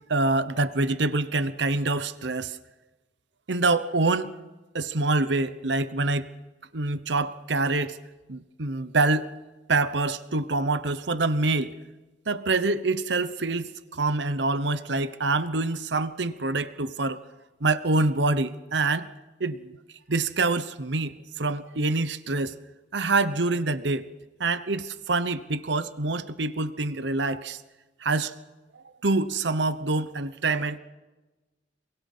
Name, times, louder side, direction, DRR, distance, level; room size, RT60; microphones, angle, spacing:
voice 1, 0.1-2.6 3.5-4.3 4.7-6.3 6.7-8.0 8.3-9.3 9.7-11.7 12.3-17.2 17.6-19.1 19.4-19.8 20.1-22.5 22.9-24.1 24.4-27.6 28.0-28.3 29.0-30.8, right 3 dB, 70° right, 1.0 m, -26 dB
26.5 x 24.0 x 5.6 m
head